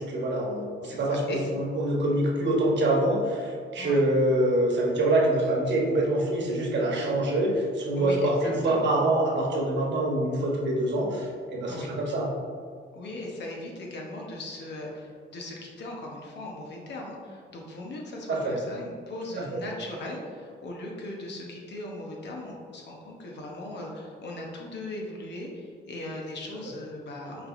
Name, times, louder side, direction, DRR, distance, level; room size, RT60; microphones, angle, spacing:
voice 1, 0.0-12.3 18.3-18.6 19.4-19.6, right 1 dB, 65° right, -2 dB, 1.1 m, -25 dB
voice 2, 8.0-8.9 11.7-11.9 12.9-27.5, left 1 dB, 65° left, -1 dB, 1.0 m, -38 dB
5.8 x 3.4 x 2.6 m, 2.1 s
cardioid pair, 90°, 20 cm